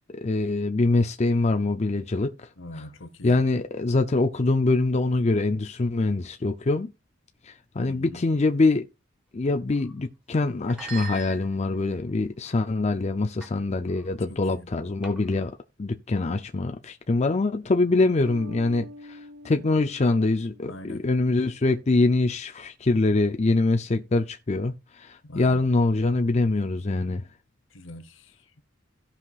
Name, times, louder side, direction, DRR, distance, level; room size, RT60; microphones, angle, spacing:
voice 1, 0.2-2.5 2.8-2.9 3.2-6.9 7.4-8.8 9.3-15.5 15.8-19.2 19.4-27.2, left 2 dB, 35° left, 0.5 m, -24 dB
voice 2, 2.6-3.4 7.8-8.2 14.3-14.7 20.6-21.0 25.2-25.6 27.7-28.5, left 1 dB, 65° left, 1.0 m, -42 dB
sound 1, 9.7-10.0 10.6-11.9 12.5-12.8 13.4-13.6 13.9-14.1 15.0-15.5, right 4 dB, 5° right, 2.3 m, -41 dB
sound 2, 18.2-21.6, left 1 dB, 85° right, 1.1 m, -46 dB
16.5 x 5.8 x 2.4 m
head